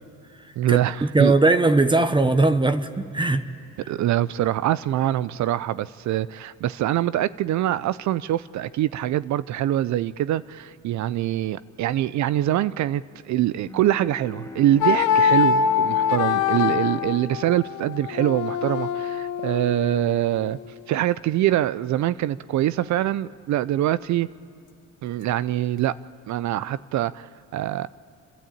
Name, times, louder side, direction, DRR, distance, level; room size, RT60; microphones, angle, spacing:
voice 1, 0.6-1.4 3.9-20.6 20.9-24.3 25.0-26.0 26.3-27.9, right 13 dB, 70° right, 16 dB, 0.5 m, -24 dB
voice 2, 1.1-3.4, right 2 dB, 15° right, 10 dB, 0.9 m, -19 dB
Bowed string instrument, 13.7-18.9, left 1 dB, 10° left, 1.2 m, -40 dB
sound 1, 14.8-20.7, left 7 dB, 90° left, 0.8 m, -24 dB
29.5 x 12.5 x 8.7 m, 2.5 s
cardioid pair, 90°, 30 cm